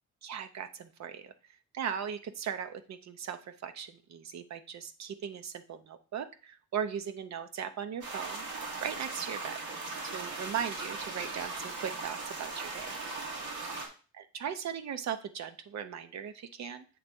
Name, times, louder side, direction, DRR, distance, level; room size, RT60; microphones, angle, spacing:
voice 1, 0.2-1.3 1.7-8.4 8.8-9.6 10.0-12.9 14.1-16.8, right 8 dB, 65° right, 9 dB, 0.8 m, -38 dB
sound 1, 8.0-13.9, right 3 dB, 85° right, 2.1 m, -39 dB
7.7 x 3.3 x 5.3 m, 0.37 s
cardioid pair, 90°, 30 cm